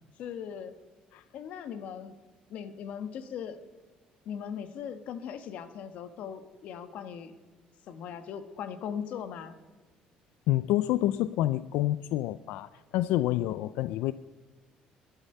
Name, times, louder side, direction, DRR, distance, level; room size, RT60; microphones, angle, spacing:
voice 1, 0.2-0.7 1.3-2.1 2.5-3.6 4.2-7.3 7.9-9.6, left 8 dB, 55° left, 10 dB, 1.3 m, -39 dB
voice 2, 10.5-14.1, left 14 dB, 85° left, 15 dB, 0.4 m, -28 dB
21.0 x 11.5 x 5.5 m, 1.3 s
cardioid pair, 165°, 3 cm